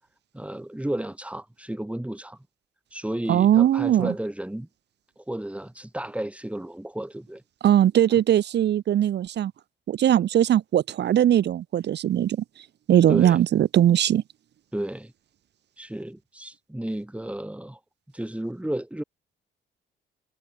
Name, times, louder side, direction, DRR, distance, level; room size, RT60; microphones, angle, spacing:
voice 1, 0.3-2.4 2.9-4.7 5.2-7.4 13.1-13.4 14.7-15.1 15.8-17.8 18.1-19.0, right 1 dB, 5° right, 6.8 m, -32 dB
voice 2, 3.3-4.1 7.6-9.5 9.9-12.4 12.9-14.2, right 11 dB, 60° right, 0.9 m, -20 dB
cardioid pair, 90°, 20 cm